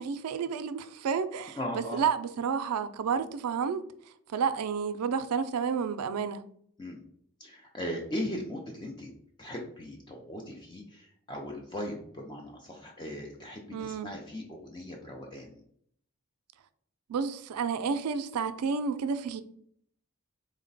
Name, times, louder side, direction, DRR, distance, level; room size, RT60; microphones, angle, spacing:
voice 1, 0.0-3.8 4.3-6.4 13.7-14.1 17.1-19.4, right 6 dB, 90° right, 0.4 m, -30 dB
voice 2, 1.6-2.0 6.8-7.0 7.4-9.1 9.4-15.6, left 1 dB, 20° left, 0.4 m, -38 dB
3.9 x 2.1 x 3.8 m
head